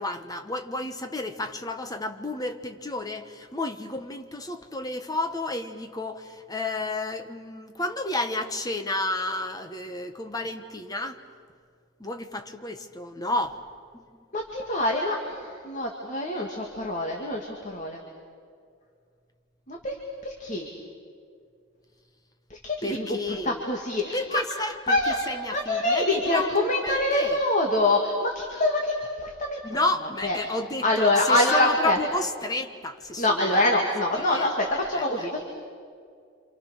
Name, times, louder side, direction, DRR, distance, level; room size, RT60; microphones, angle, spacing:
voice 1, 0.0-11.2 12.0-13.6 13.9-14.0 22.8-23.6 24.1-27.4 29.6-33.5 34.1-34.5 34.9-35.4, left 2 dB, 20° left, 7 dB, 1.2 m, -31 dB
voice 2, 14.3-18.0 19.7-20.0 20.2-20.7 22.5-23.2 23.4-24.4 24.9-25.1 25.5-29.6 30.2-30.4 30.8-32.0 33.2-35.4, left 1 dB, 40° left, 0 dB, 2.4 m, -25 dB
28.5 x 27.0 x 6.6 m, 2.2 s
head